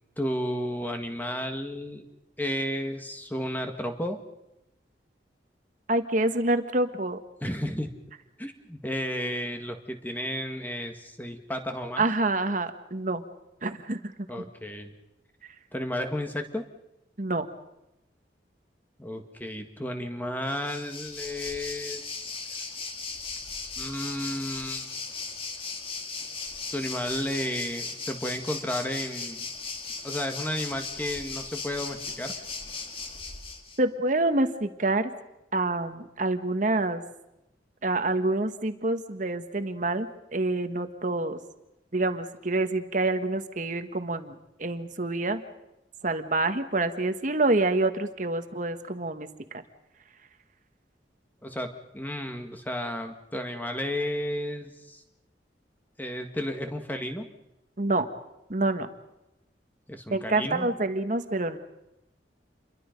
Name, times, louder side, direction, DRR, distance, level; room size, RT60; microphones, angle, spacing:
voice 1, 0.2-2.0 2.4-4.2 7.4-7.9 8.4-12.1 14.3-14.9 15.7-16.7 19.0-22.1 23.8-24.9 26.7-29.5 30.0-32.3 51.4-55.0 56.0-57.3 59.9-60.7, left 1 dB, 10° left, 5 dB, 1.8 m, -32 dB
voice 2, 5.9-7.2 12.0-13.2 13.6-14.1 17.2-17.5 33.8-35.1 35.5-37.0 37.8-41.4 41.9-45.4 46.0-49.3 49.5-49.6 57.8-58.1 58.5-58.9 60.1-61.6, right 2 dB, 45° right, 8 dB, 1.5 m, -27 dB
Waves surf, 20.5-33.8, left 4 dB, 30° left, 2.2 m, -37 dB
28.5 x 23.0 x 5.3 m, 0.89 s
head